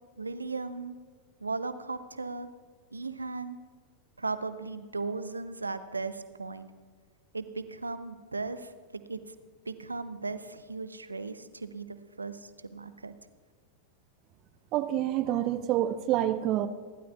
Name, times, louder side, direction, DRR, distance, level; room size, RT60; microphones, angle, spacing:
voice 1, 0.2-1.0 1.4-2.5 2.9-3.6 4.2-6.7 7.3-9.2 9.7-13.1, right 3 dB, 80° right, 12 dB, 0.7 m, -37 dB
voice 2, 14.7-16.7, right 12 dB, 40° right, 12 dB, 0.5 m, -27 dB
28.5 x 12.0 x 2.4 m, 1.5 s
figure-of-eight pair, 90°, 0 cm